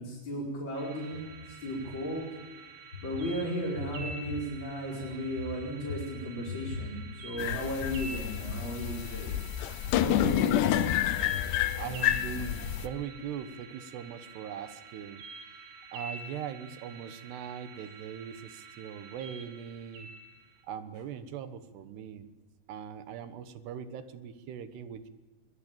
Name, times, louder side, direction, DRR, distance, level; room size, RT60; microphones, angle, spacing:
voice 1, 0.0-2.3 3.0-9.4 10.0-10.6, equal, 25° left, -4 dB, 5.2 m, -35 dB
sound 1, 0.8-20.6, right 3 dB, 60° right, 3.8 m, -48 dB
sound 2, 7.4-12.9, left 11 dB, 85° left, 3.1 m, -29 dB
voice 2, 11.8-15.2 15.9-20.1 20.6-22.3 22.7-25.1, right 8 dB, 75° right, 11 dB, 3.3 m, -40 dB
22.5 x 21.5 x 8.9 m, 1.3 s
omnidirectional pair, 5.0 m